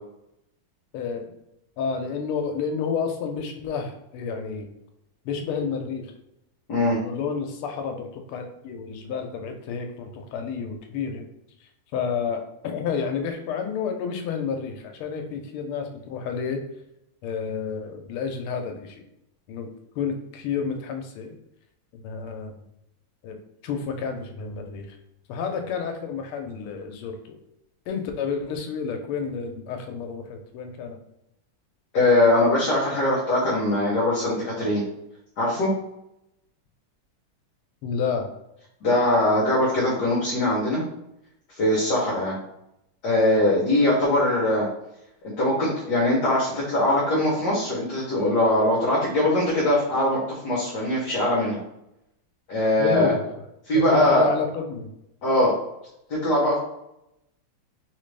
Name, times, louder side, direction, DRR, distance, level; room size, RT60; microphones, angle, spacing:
voice 1, 0.9-1.3 1.8-4.7 5.2-6.1 6.9-11.2 11.9-16.6 17.2-19.0 19.5-19.7 19.9-21.3 21.9-22.6 23.2-23.4 23.6-25.0 25.3-27.4 27.9-31.0 37.8-38.3 52.8-53.2 53.7-54.9, left 6 dB, 85° left, 4 dB, 1.5 m, -30 dB
voice 2, 31.9-34.8 35.4-35.7 38.8-40.8 41.6-42.3 43.0-44.7 45.4-51.6 52.5-53.1 53.7-54.3 55.2-55.5 56.2-56.6, left 1 dB, 60° left, -6 dB, 1.3 m, -21 dB
3.8 x 2.4 x 3.2 m, 0.84 s
omnidirectional pair, 2.4 m